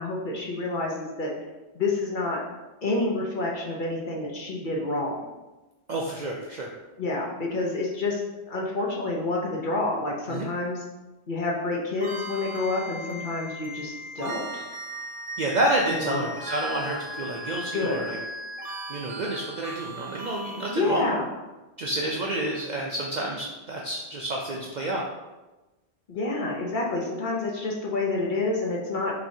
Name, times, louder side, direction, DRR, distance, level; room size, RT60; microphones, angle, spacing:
voice 1, 0.0-1.3 1.7-2.4 2.8-5.3 7.0-8.2 8.5-10.8 11.3-14.6 15.9-16.3 17.7-18.0 20.7-21.3 26.1-29.1, left 2 dB, 50° left, -2 dB, 0.8 m, -28 dB
voice 2, 5.9-6.7 10.3-10.5 15.4-18.2 18.9-21.0 21.8-25.0, right 1 dB, 55° right, -2 dB, 0.5 m, -29 dB
sound 1, 12.0-20.7, right 1 dB, 80° right, 1.0 m, -37 dB
5.8 x 3.1 x 2.7 m, 1.1 s
omnidirectional pair, 1.2 m